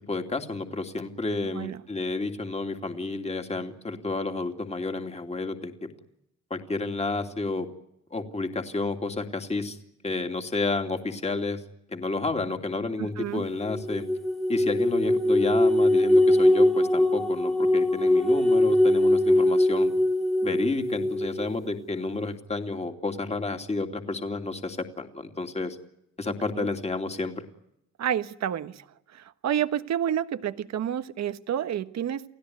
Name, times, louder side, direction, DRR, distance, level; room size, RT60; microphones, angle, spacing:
voice 1, 0.1-5.9 6.5-7.7 8.1-9.8 10.0-11.6 11.9-14.1 14.5-19.9 20.4-25.8 26.2-27.4, left 3 dB, 20° left, 5 dB, 2.9 m, -30 dB
voice 2, 1.5-1.8 13.0-13.4 26.6-26.7 28.0-32.2, right 10 dB, 60° right, 11 dB, 1.3 m, -29 dB
sound 1, 13.6-21.5, left 1 dB, ahead, 1.5 m, -22 dB
30.0 x 16.5 x 9.6 m, 0.82 s
cardioid pair, 90°, 30 cm